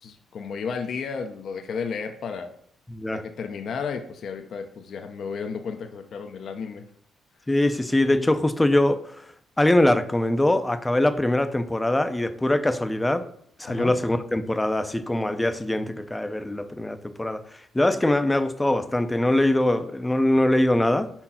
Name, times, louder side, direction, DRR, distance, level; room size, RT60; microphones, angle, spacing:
voice 1, 0.0-2.5 3.1-6.8 13.7-13.9, left 5 dB, 60° left, 5 dB, 0.7 m, -33 dB
voice 2, 2.9-3.2 7.5-9.3 9.6-13.3 13.6-21.1, left 1 dB, 10° left, 9 dB, 0.6 m, -22 dB
5.0 x 4.5 x 5.7 m, 0.62 s
cardioid pair, 90°, 0 cm